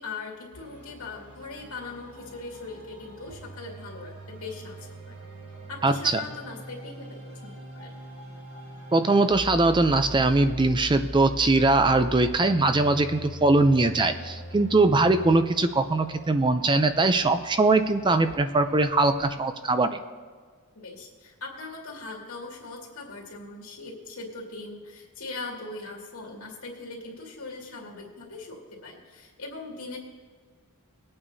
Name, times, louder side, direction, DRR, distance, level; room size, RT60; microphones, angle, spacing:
voice 1, 0.0-5.2 5.7-7.9 20.8-30.0, left 3 dB, 75° left, -1 dB, 2.3 m, -40 dB
sound 1, 0.5-19.2, equal, 85° right, 3.9 m, -42 dB
voice 2, 5.8-6.2 8.9-20.0, right 2 dB, 20° right, 9 dB, 0.4 m, -21 dB
21.0 x 8.8 x 2.7 m, 1.6 s
head